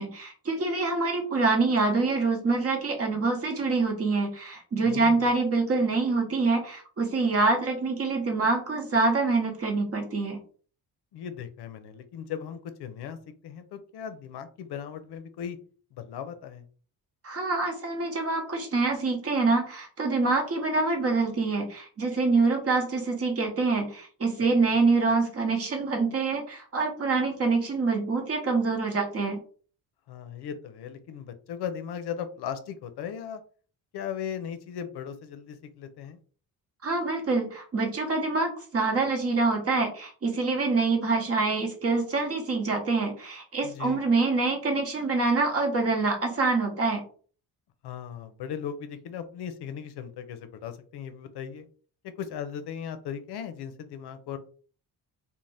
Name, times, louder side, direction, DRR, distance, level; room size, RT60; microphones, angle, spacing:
voice 1, 0.0-10.4 17.2-29.4 36.8-47.0, right 3 dB, 35° right, 3 dB, 0.8 m, -26 dB
voice 2, 4.8-5.3 11.1-13.2 13.4-15.6 15.9-16.6 30.1-33.4 33.9-36.2 43.6-44.1 47.8-51.7 52.2-54.4, left 8 dB, 75° left, 10 dB, 0.5 m, -37 dB
2.6 x 2.1 x 3.2 m, 0.41 s
cardioid pair, 145°, 40 cm